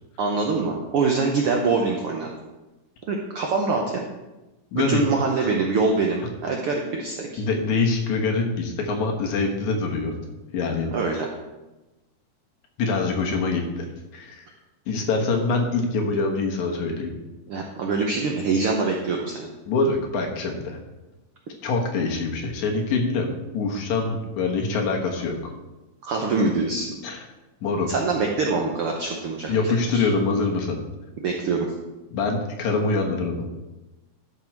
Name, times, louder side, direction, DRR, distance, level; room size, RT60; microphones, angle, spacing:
voice 1, 0.2-2.3 3.1-4.1 4.7-7.4 10.9-11.3 17.5-19.5 26.0-26.9 27.9-29.5 29.9-30.1 31.2-31.7, right 4 dB, 90° right, 1 dB, 1.2 m, -24 dB
voice 2, 4.7-5.1 5.4-5.5 7.4-10.2 10.5-10.9 12.8-13.9 14.1-14.5 14.9-17.1 19.7-20.8 21.6-23.3 23.5-25.5 27.0-27.2 27.6-27.9 29.5-30.8 32.1-33.5, left 3 dB, 65° left, 1 dB, 2.5 m, -24 dB
12.0 x 5.3 x 4.5 m, 1.1 s
omnidirectional pair, 3.7 m